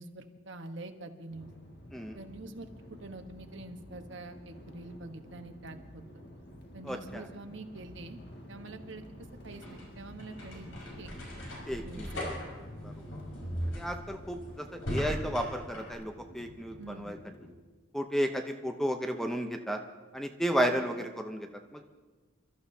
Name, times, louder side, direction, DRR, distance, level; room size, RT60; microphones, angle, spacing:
voice 1, 0.0-1.5 2.1-2.7 3.0-6.2 6.7-8.2 8.5-9.0 9.4-11.1 11.8-12.2 16.8-17.1 20.7-20.9, right 2 dB, 65° right, 6 dB, 1.2 m, -45 dB
sound 1, 1.3-17.5, left 1 dB, 55° left, 1.8 m, -50 dB
voice 2, 6.8-7.2 11.7-12.1 12.8-12.9 13.7-17.2 17.9-19.8 20.1-21.9, equal, ahead, 4 dB, 0.7 m, -33 dB
sound 2, 9.4-15.9, equal, 80° left, 5.5 m, -39 dB
28.0 x 13.5 x 2.8 m, 1.4 s
head